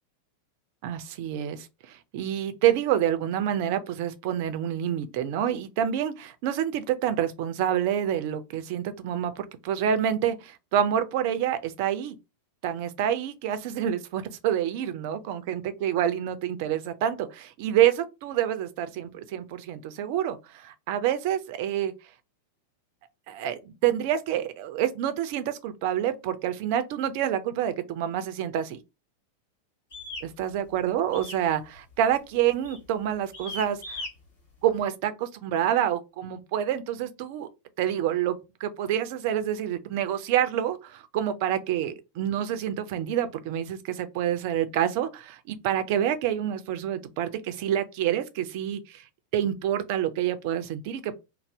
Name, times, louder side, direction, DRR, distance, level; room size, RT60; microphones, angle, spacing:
voice 1, 0.8-12.2 12.6-21.9 23.3-28.8 30.2-34.0 34.6-37.5 37.8-49.0 49.3-51.1, right 10 dB, 45° right, 0.4 m, -27 dB
sound 1, 29.9-30.3 31.1-31.5 31.8-32.1 32.6-32.9 33.3-34.1, left 2 dB, 65° left, 1.4 m, -38 dB
2.6 x 2.0 x 3.1 m
figure-of-eight pair, 90°, 0 cm